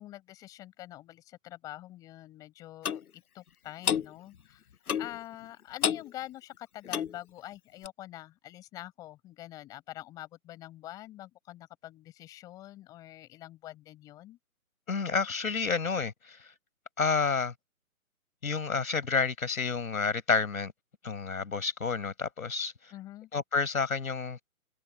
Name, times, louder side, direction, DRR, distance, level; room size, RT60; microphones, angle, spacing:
voice 1, 0.0-3.0 3.3-4.6 5.0-14.4 22.9-23.3, left 14 dB, 10° left, 6.9 m, -45 dB
Clock, 2.8-3.0 3.8-4.1 4.9-5.2 5.8-6.1 6.8-7.2 7.8-7.9, left 8 dB, 90° left, 1.0 m, -29 dB
voice 2, 14.9-16.5 17.0-17.5 18.4-20.7 21.0-22.7 23.3-24.5, left 5 dB, 70° left, 5.6 m, -30 dB
hypercardioid pair, 180°, 43 cm